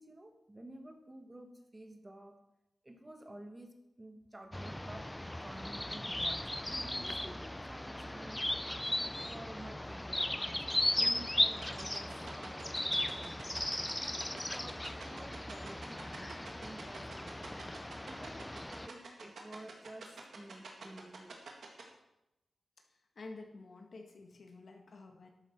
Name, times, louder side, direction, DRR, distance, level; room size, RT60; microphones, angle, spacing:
voice 1, 0.0-2.4 2.8-5.1 5.4-8.4 8.8-10.6 11.0-13.6 14.3-17.7 18.0-18.4 18.8-21.3, right 1 dB, 20° right, 5 dB, 1.3 m, -52 dB
sound 1, 4.5-18.9, left 1 dB, 10° left, 0.3 m, -37 dB
sound 2, 11.6-21.8, right 5 dB, 80° right, 2.0 m, -47 dB
voice 2, 23.1-25.3, left 3 dB, 60° left, 3 dB, 1.7 m, -50 dB
12.0 x 9.2 x 4.5 m, 0.91 s
wide cardioid pair, 105°, 0 cm